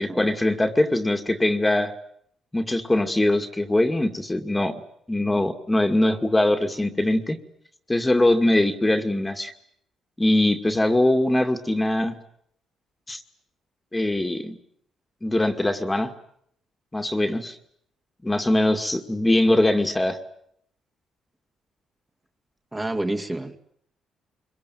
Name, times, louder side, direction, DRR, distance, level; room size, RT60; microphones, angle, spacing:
voice 1, 0.0-1.9 2.5-4.7 5.1-7.4 7.9-9.5 10.2-12.1 13.1-13.2 13.9-14.6 15.2-16.1 16.9-17.6 18.2-20.2, left 1 dB, 15° left, 6 dB, 2.3 m, -22 dB
voice 2, 22.7-23.6, right 1 dB, 15° right, 4 dB, 2.4 m, -29 dB
25.5 x 23.5 x 9.3 m, 0.72 s
cardioid pair, 90°, 0 cm